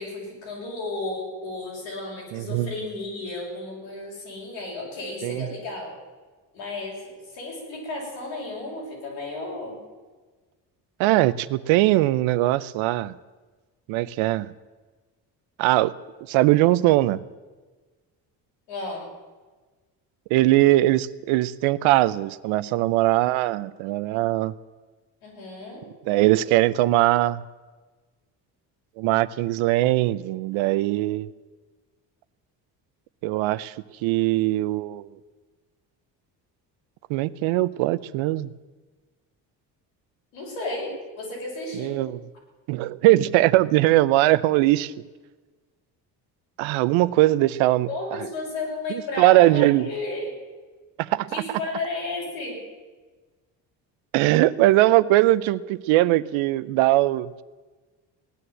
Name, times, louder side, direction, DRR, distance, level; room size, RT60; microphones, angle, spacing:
voice 1, 0.0-5.9 6.5-9.8 18.7-19.1 25.2-25.8 40.3-40.9 41.2-42.0 47.9-50.3 51.3-52.6, left 2 dB, 90° left, -3 dB, 6.3 m, -33 dB
voice 2, 2.3-2.7 5.2-5.5 11.0-13.1 13.9-14.5 15.6-15.9 16.3-17.2 20.3-24.5 26.1-27.4 29.0-31.3 33.2-33.7 34.0-35.1 37.1-38.5 41.8-42.2 42.7-44.9 46.6-47.9 48.9-49.9 51.0-51.4 54.1-57.4, right 17 dB, 75° right, 16 dB, 0.7 m, -20 dB
17.5 x 10.0 x 7.7 m, 1.3 s
supercardioid pair, 60°, 48 cm